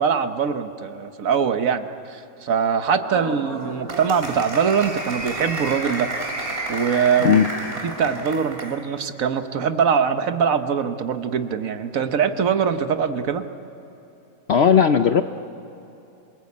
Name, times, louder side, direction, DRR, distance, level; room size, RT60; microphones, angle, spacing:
voice 1, 0.0-6.1 6.7-7.4 7.8-13.4, right 6 dB, 60° right, 9 dB, 1.3 m, -22 dB
Applause, 3.0-8.8, right 2 dB, 40° right, 3.1 m, -31 dB
voice 2, 14.5-15.2, left 7 dB, 55° left, 8 dB, 0.7 m, -16 dB
26.5 x 19.5 x 8.5 m, 2.9 s
omnidirectional pair, 1.7 m